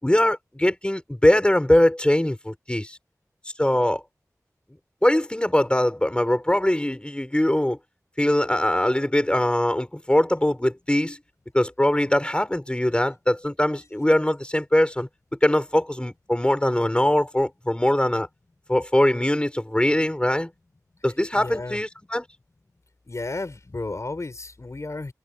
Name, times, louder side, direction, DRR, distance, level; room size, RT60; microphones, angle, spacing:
voice 1, 0.0-3.0 3.6-4.0 5.0-7.8 8.2-11.2 11.5-15.1 15.4-18.3 18.7-20.5 21.0-22.2, left 1 dB, 15° left, 5.9 m, -22 dB
voice 2, 21.3-21.8 23.1-25.1, left 2 dB, 55° left, 6.7 m, -33 dB
wide cardioid pair, 45°, 6 cm